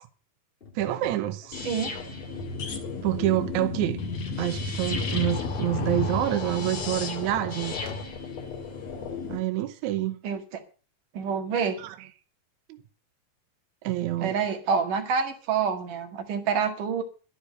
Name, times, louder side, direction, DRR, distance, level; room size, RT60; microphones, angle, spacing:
Tap, 0.6-8.1, left 4 dB, 30° left, 1.2 m, -45 dB
voice 1, 0.8-1.6 3.0-4.0 4.4-7.8 9.3-10.2 11.8-12.0 12.7-12.8 13.8-14.4, right 14 dB, 75° right, 2.1 m, -27 dB
sound 1, 1.5-9.4, left 4 dB, 55° left, 3.1 m, -32 dB
voice 2, 11.1-11.8 14.2-17.0, right 6 dB, 90° right, 3.5 m, -27 dB
11.5 x 10.0 x 6.6 m
omnidirectional pair, 3.6 m